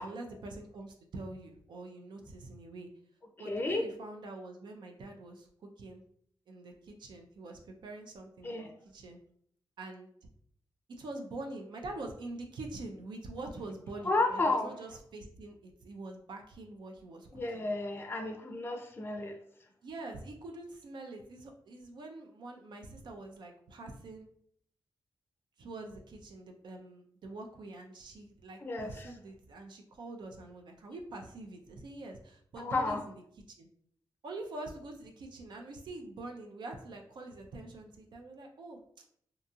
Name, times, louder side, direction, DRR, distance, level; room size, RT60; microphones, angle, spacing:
voice 1, 0.0-2.9 3.4-6.0 6.5-9.2 9.8-10.1 10.9-17.7 19.8-24.3 25.6-33.1 33.6-33.7 34.2-39.1, right 2 dB, 65° right, 2 dB, 0.4 m, -45 dB
voice 2, 3.4-3.9 8.4-8.7 14.1-14.7 17.3-19.4 28.6-29.1 32.6-33.0, left 2 dB, 25° left, 5 dB, 0.4 m, -32 dB
2.7 x 2.3 x 2.6 m, 0.63 s
cardioid pair, 75°, 8 cm